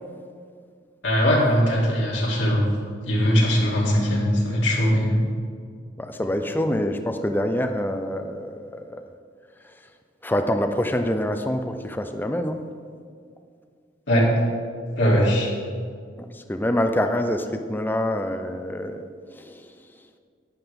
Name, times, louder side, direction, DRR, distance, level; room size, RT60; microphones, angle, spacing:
voice 1, 1.0-2.7 3.1-5.2 14.1-14.3 15.0-15.5, equal, 80° left, -5 dB, 3.0 m, -20 dB
voice 2, 6.0-9.0 10.2-12.6 16.5-19.0 19.3-19.6, left 1 dB, 10° left, 6 dB, 0.5 m, -25 dB
11.5 x 9.8 x 3.6 m, 2.2 s
head